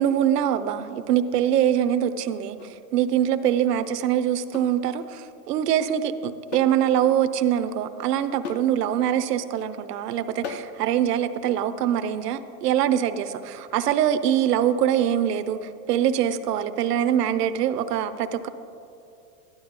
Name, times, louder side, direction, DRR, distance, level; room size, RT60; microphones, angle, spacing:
voice 1, 0.0-2.6 2.9-18.5, right 10 dB, 80° right, 11 dB, 0.8 m, -23 dB
sound 1, 2.6-2.8 4.5-4.8 6.5-6.8 7.1-7.2 8.4-8.7 10.4-10.8, left 5 dB, 30° left, 0.4 m, -36 dB
12.5 x 11.0 x 3.7 m, 2.7 s
supercardioid pair, 155°, 47 cm